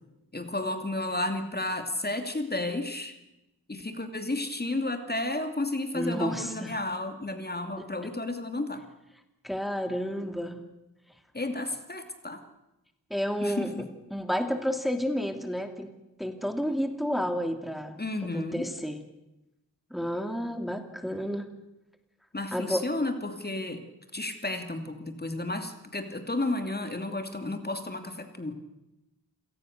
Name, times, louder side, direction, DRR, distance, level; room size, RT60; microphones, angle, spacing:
voice 1, 0.3-3.1 3.7-8.8 11.3-12.4 13.4-13.9 18.0-18.7 22.3-23.8 24.1-28.5, left 2 dB, 25° left, 7 dB, 2.7 m, -32 dB
voice 2, 5.9-6.7 9.4-10.6 13.1-13.7 14.1-15.9 16.2-18.0 18.3-19.0 19.9-21.5 22.5-22.8, equal, ahead, 7 dB, 2.7 m, -30 dB
27.5 x 18.5 x 6.7 m, 0.95 s
cardioid pair, 50°, 37 cm